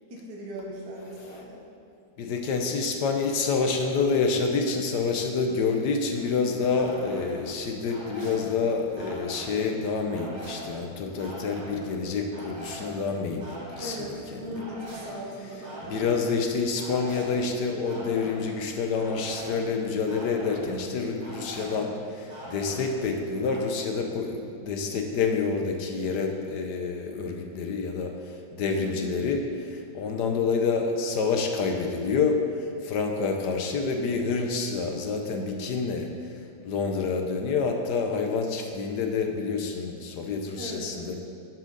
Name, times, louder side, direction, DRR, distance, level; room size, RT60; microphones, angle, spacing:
voice 1, 0.1-1.6 13.8-16.0 28.8-29.1 40.6-40.9, equal, 60° right, -3 dB, 2.0 m, -38 dB
voice 2, 2.2-14.6 15.8-36.1 36.6-41.2, left 4 dB, 65° left, 4 dB, 1.4 m, -28 dB
sound 1, 6.2-23.6, right 1 dB, 85° right, 3.2 m, -43 dB
11.5 x 7.3 x 4.0 m, 2.4 s
omnidirectional pair, 2.0 m